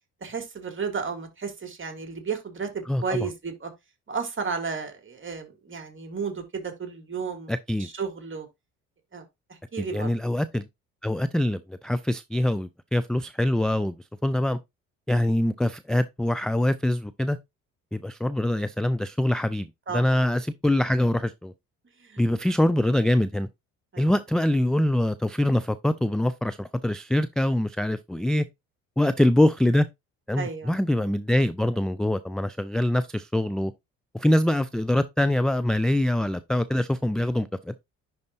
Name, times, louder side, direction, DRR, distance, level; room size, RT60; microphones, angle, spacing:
voice 1, 0.2-3.7 4.1-7.5 7.8-8.5 9.1-9.2 9.7-10.1 19.9-20.3 22.0-22.2 23.9-24.1 30.4-30.7, right 5 dB, 30° right, 2.3 m, -33 dB
voice 2, 2.9-3.3 7.5-7.9 9.9-10.7 11.0-14.0 14.2-14.6 15.1-17.4 17.9-19.7 19.9-21.5 22.2-23.5 24.0-28.4 29.0-29.9 30.3-33.7 34.1-37.8, left 1 dB, ahead, 0.3 m, -24 dB
10.5 x 3.9 x 2.6 m
hypercardioid pair, 50°, 39 cm